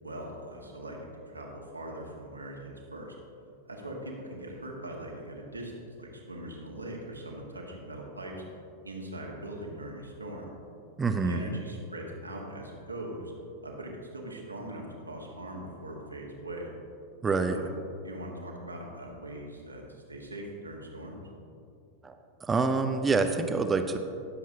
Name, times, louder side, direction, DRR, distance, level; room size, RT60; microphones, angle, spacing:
voice 1, 0.0-3.1 3.7-8.4 8.8-10.5 11.2-13.3 13.6-16.7 17.5-17.7 18.0-21.2, right 1 dB, 80° right, -1 dB, 1.5 m, -41 dB
voice 2, 11.0-11.4 17.2-17.6 22.0-24.0, right 4 dB, 15° right, 7 dB, 0.6 m, -27 dB
16.5 x 7.2 x 2.8 m, 2.5 s
figure-of-eight pair, 90°, 0 cm